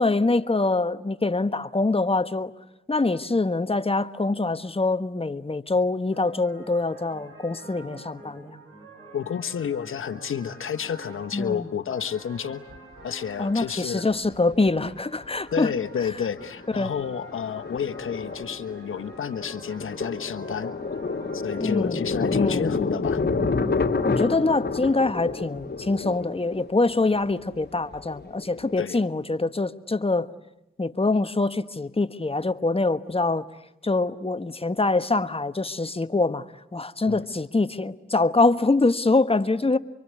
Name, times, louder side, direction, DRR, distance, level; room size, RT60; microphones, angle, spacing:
voice 1, 0.0-2.5 2.9-8.5 11.3-11.7 13.4-15.7 16.8-16.9 21.6-22.0 22.3-22.7 24.0-30.3 30.8-33.5 33.8-36.4 36.7-39.8, left 3 dB, 25° left, 1.4 m, -24 dB
sound 1, 6.1-21.8, right 2 dB, 85° right, 5.5 m, -47 dB
voice 2, 9.1-12.6 13.0-14.1 15.5-20.7 21.3-23.2 28.8-29.0 37.1-37.2, left 7 dB, 75° left, 1.3 m, -30 dB
Thunder, 12.7-12.8 14.1-14.9 15.2-15.3 15.7-16.0 16.4-28.8, left 4 dB, 55° left, 3.3 m, -29 dB
25.0 x 24.0 x 9.5 m
supercardioid pair, 40°, 21 cm